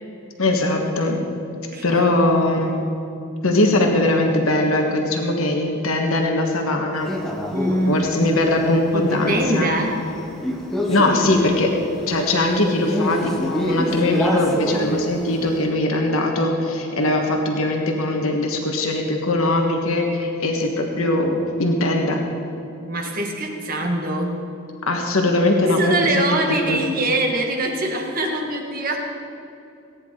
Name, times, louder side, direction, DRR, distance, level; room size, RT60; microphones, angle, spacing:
voice 1, 0.4-1.2 1.8-2.8 3.4-7.1 7.8-9.7 10.9-11.7 12.1-22.2 24.9-26.1 26.7-26.8, left 2 dB, 75° left, 2 dB, 1.5 m, -20 dB
voice 2, 1.7-2.1 7.5-8.1 8.9-10.0 22.8-24.4 25.6-29.0, right 1 dB, 40° right, 2 dB, 1.5 m, -23 dB
Male speech man speaking, 7.0-15.6, equal, ahead, 1.0 m, -27 dB
18.5 x 10.0 x 3.8 m, 2.7 s
head